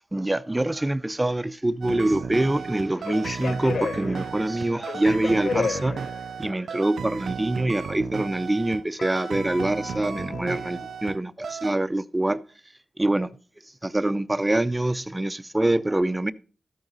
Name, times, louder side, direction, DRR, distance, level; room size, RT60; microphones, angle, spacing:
voice 1, 0.1-6.0 6.4-12.4 13.0-13.3 13.8-16.3, right 1 dB, 15° right, 0.6 m, -25 dB
sound 1, 1.8-11.2 11.4-11.7, right 6 dB, 80° right, 0.4 m, -34 dB
sound 2, 2.9-6.6 9.0-11.1, left 5 dB, 75° left, 0.5 m, -34 dB
13.0 x 8.8 x 4.0 m
cardioid pair, 75°, 0 cm